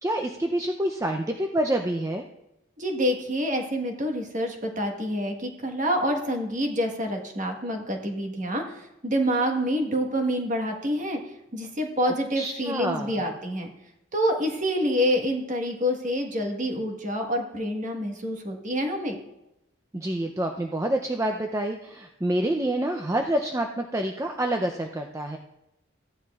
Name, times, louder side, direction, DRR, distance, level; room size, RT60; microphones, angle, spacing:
voice 1, 0.0-2.2 12.1-13.2 19.9-25.4, right 1 dB, 15° right, 3 dB, 0.4 m, -27 dB
voice 2, 2.8-11.2 11.5-13.7 14.1-19.2, equal, 40° right, 3 dB, 1.3 m, -27 dB
15.0 x 9.9 x 2.4 m, 0.89 s
head